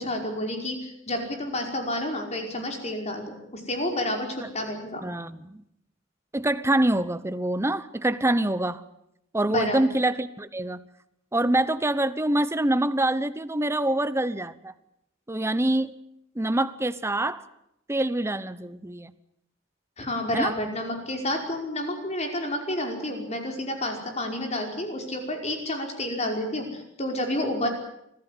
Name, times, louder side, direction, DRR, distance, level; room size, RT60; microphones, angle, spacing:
voice 1, 0.0-5.0 9.5-9.8 20.0-27.7, left 1 dB, 35° left, 3 dB, 5.3 m, -30 dB
voice 2, 5.0-5.6 6.3-8.8 9.3-10.8 11.3-14.7 15.3-16.0 16.3-17.4 17.9-19.1 20.3-20.5, right 1 dB, 15° right, 14 dB, 1.0 m, -25 dB
25.5 x 15.5 x 9.9 m, 0.80 s
head